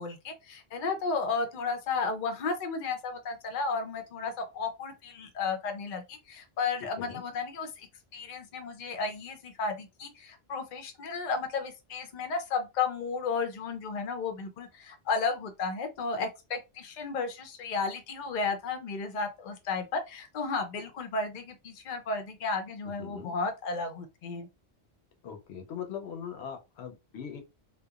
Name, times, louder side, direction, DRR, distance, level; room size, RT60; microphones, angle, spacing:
voice 1, 0.0-24.5, left 4 dB, 55° left, 0.6 m, -33 dB
voice 2, 23.0-23.3 25.2-27.4, left 8 dB, 85° left, 0.9 m, -40 dB
2.9 x 2.1 x 2.3 m
omnidirectional pair, 1.1 m